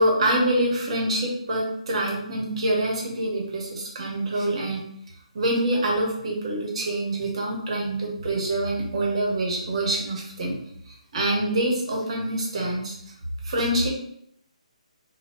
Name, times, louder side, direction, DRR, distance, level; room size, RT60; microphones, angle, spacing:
voice 1, 0.0-4.8 5.3-10.6 10.9-12.9 13.4-13.9, right 1 dB, 50° right, -1 dB, 1.0 m, -25 dB
3.1 x 2.3 x 3.0 m, 0.72 s
figure-of-eight pair, 140°, 4 cm